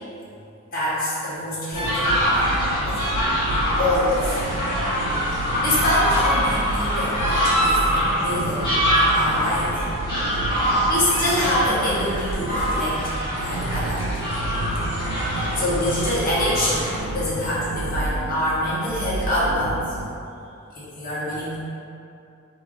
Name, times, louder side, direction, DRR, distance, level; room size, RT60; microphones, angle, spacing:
voice 1, 0.7-2.5 2.9-3.0 3.8-4.4 5.6-8.7 8.9-9.8 10.5-13.0 13.4-14.0 14.5-14.8 15.3-19.8 20.7-21.6, left 1 dB, 40° left, -9 dB, 1.3 m, -25 dB
sound 1, 1.7-17.0, equal, 20° left, 1.2 m, -24 dB
sound 2, 1.7-20.2, right 2 dB, 85° right, 0.4 m, -31 dB
4.6 x 2.9 x 3.6 m, 2.6 s
head